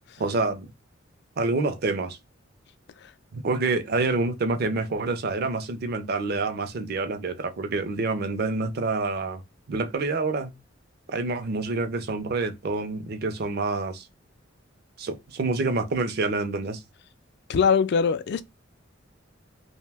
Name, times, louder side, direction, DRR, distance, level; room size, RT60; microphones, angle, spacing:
voice 1, 0.2-0.7 1.4-2.2 3.3-9.4 9.7-10.5 11.1-14.1 15.0-16.8, right 3 dB, 55° right, 0.5 m, -27 dB
voice 2, 17.5-18.4, left 6 dB, 60° left, 0.3 m, -22 dB
2.6 x 2.1 x 3.3 m
head